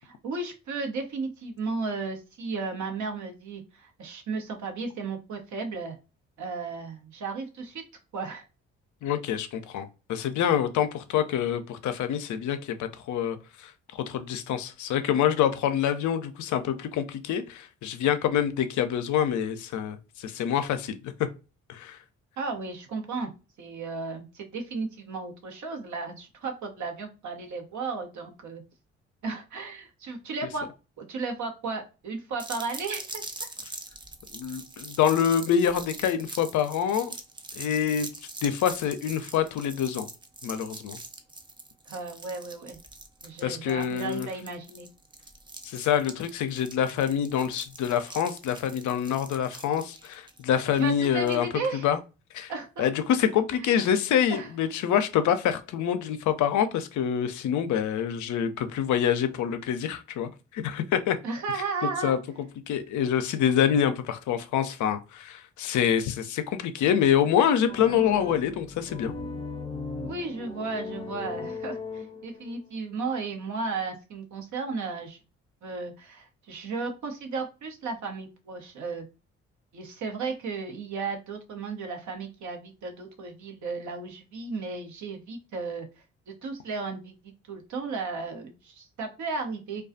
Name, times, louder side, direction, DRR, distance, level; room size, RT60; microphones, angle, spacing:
voice 1, 0.0-6.0 6.4-7.8 8.1-8.4 22.4-23.3 23.6-28.6 29.2-30.7 31.0-33.2 41.9-42.8 43.2-44.9 50.8-51.9 52.5-52.9 53.7-53.8 54.3-54.5 61.2-62.1 70.0-75.2 75.6-79.1 79.7-85.9 86.3-87.1 87.5-89.9, right 4 dB, 60° right, 0.8 m, -34 dB
voice 2, 9.0-21.1 21.7-22.0 34.3-37.1 37.5-38.1 38.4-40.1 40.4-41.0 43.4-44.3 45.6-51.5 51.8-52.0 52.3-52.5 52.8-61.2 62.0-62.2 62.7-69.1, left 9 dB, 60° left, 0.5 m, -26 dB
sound 1, 32.4-51.4, right 2 dB, 15° right, 0.5 m, -43 dB
sound 2, 67.6-72.6, left 3 dB, 15° left, 0.8 m, -37 dB
2.3 x 2.3 x 2.5 m
hypercardioid pair, 45°, 33 cm